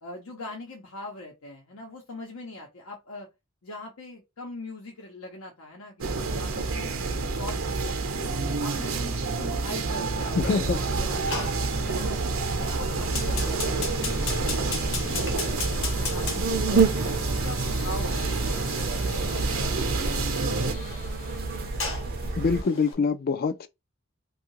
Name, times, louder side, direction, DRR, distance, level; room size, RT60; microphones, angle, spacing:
voice 1, 0.0-3.3 3.6-7.0 7.4-8.2 8.6-11.5 11.8-12.3 12.6-16.9 17.3-20.9, left 2 dB, 90° left, 0.8 m, -42 dB
sound 1, 6.0-20.7, right 3 dB, 80° right, 0.7 m, -29 dB
voice 2, 10.4-10.8 22.4-23.7, left 4 dB, 45° left, 0.3 m, -25 dB
sound 2, 10.6-22.6, right 4 dB, 45° right, 0.5 m, -30 dB
Fire, 11.3-22.9, left 4 dB, 65° left, 1.0 m, -37 dB
2.7 x 2.3 x 2.9 m
head